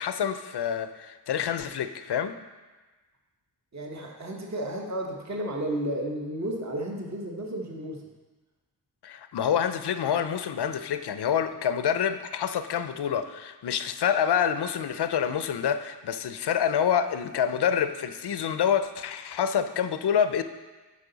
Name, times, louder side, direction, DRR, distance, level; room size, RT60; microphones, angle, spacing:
voice 1, 0.0-2.3 9.0-20.4, left 8 dB, 70° left, 10 dB, 0.5 m, -27 dB
voice 2, 3.7-8.0, right 1 dB, 40° right, 0 dB, 1.1 m, -32 dB
8.3 x 5.4 x 4.0 m, 1.3 s
wide cardioid pair, 70°, 42 cm